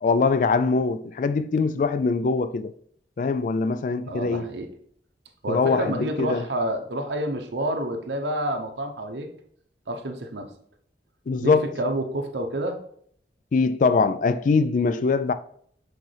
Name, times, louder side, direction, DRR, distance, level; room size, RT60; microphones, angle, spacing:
voice 1, 0.0-2.7 3.2-4.5 5.5-6.5 11.3-11.7 13.5-15.3, left 4 dB, 45° left, 0.3 m, -22 dB
voice 2, 4.1-4.7 5.4-9.3 9.9-10.5 11.4-12.8, right 1 dB, 85° right, 0.8 m, -29 dB
6.4 x 4.8 x 3.3 m
head